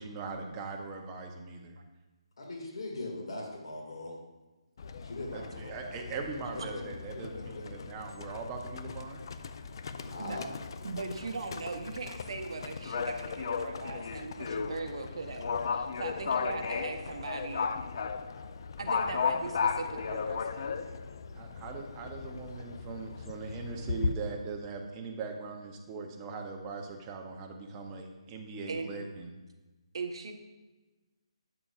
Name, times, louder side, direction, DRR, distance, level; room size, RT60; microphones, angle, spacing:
voice 1, 0.0-1.8 5.3-9.2 21.4-29.3, right 4 dB, 15° right, 2 dB, 0.6 m, -40 dB
voice 2, 2.4-4.1 5.0-6.1 6.5-6.8 7.1-7.9 9.9-10.5, left 2 dB, 65° left, -1 dB, 1.9 m, -41 dB
Livestock farm animals working animals, 4.8-24.1, left 5 dB, 45° left, 0.3 m, -36 dB
voice 3, 10.8-17.7 18.8-19.5 20.1-20.7 28.7-29.0 29.9-30.3, right 4 dB, 60° right, 5 dB, 0.8 m, -39 dB
9.0 x 6.8 x 2.4 m, 1.2 s
hypercardioid pair, 165°, 3 cm